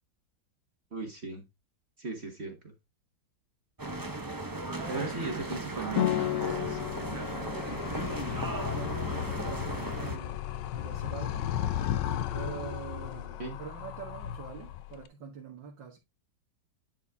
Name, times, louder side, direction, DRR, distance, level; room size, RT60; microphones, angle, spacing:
voice 1, 0.9-1.4 2.0-2.7 4.9-6.9 13.4-13.6, right 3 dB, 40° right, 1.5 m, -38 dB
sound 1, 3.8-10.2, right 2 dB, 20° right, 0.6 m, -36 dB
voice 2, 4.7-5.2 7.1-10.4 10.7-11.5 12.3-16.0, right 6 dB, 75° right, 2.3 m, -44 dB
sound 2, 6.0-13.3, left 12 dB, 60° left, 0.9 m, -36 dB
Animal, 6.5-15.1, left 11 dB, 75° left, 1.3 m, -36 dB
10.5 x 4.2 x 3.5 m
omnidirectional pair, 2.0 m